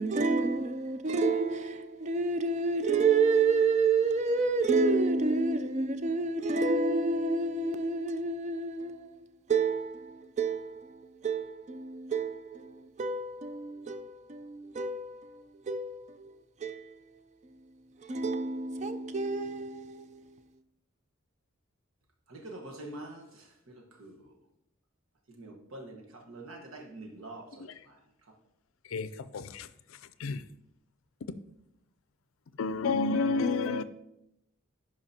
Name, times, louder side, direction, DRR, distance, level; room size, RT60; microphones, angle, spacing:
voice 1, 0.0-9.2 9.5-17.0 18.0-20.2, right 4 dB, 35° right, 0.4 m, -29 dB
voice 2, 22.3-24.3 25.3-28.0, right 2 dB, 85° right, 1.3 m, -46 dB
voice 3, 29.3-29.7 30.2-30.4 32.6-33.8, left 3 dB, 80° left, 0.4 m, -29 dB
11.0 x 4.9 x 2.8 m
head